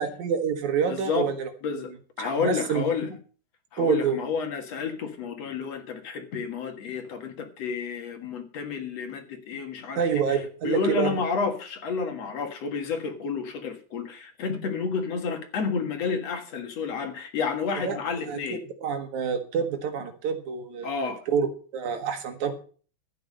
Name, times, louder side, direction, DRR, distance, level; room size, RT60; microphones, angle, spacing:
voice 1, 0.0-1.8 2.2-2.9 3.8-4.2 10.0-11.1 17.8-18.0 18.2-20.9 21.3-21.5 21.7-22.5, right 6 dB, 75° right, 3.0 m, -27 dB
voice 2, 0.9-1.3 1.6-1.9 2.2-3.1 3.7-10.0 10.3-10.4 10.6-18.6 20.8-21.2, left 5 dB, 60° left, 2.7 m, -30 dB
13.5 x 9.2 x 5.6 m
omnidirectional pair, 3.4 m